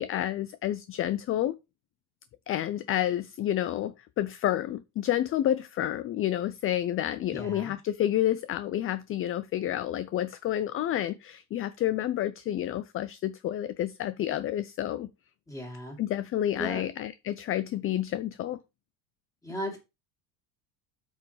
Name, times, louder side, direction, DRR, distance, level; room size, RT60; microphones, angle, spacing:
voice 1, 0.0-1.6 2.5-15.1 16.0-18.6, left 12 dB, 35° left, 0.5 m, -29 dB
voice 2, 7.3-7.7 15.5-16.0 16.6-16.8 19.4-19.8, left 1 dB, 10° left, 3.0 m, -36 dB
8.0 x 6.1 x 3.2 m
supercardioid pair, 120°, 40 cm